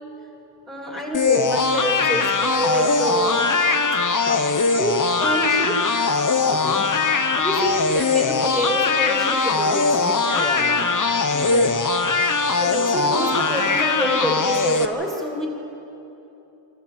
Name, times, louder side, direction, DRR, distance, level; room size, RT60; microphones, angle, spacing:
voice 1, 0.7-3.6 4.7-6.0 7.4-10.0 11.5-11.7 12.6-15.5, equal, 10° right, -1 dB, 2.8 m, -27 dB
sound 1, 1.1-14.9, left 4 dB, 45° left, 1.0 m, -21 dB
voice 2, 2.0-2.4 4.2-4.7 6.5-7.0 9.9-11.0 11.3-11.8, left 1 dB, 20° left, 3 dB, 1.7 m, -34 dB
24.5 x 14.0 x 7.8 m, 2.9 s
wide cardioid pair, 95°, 44 cm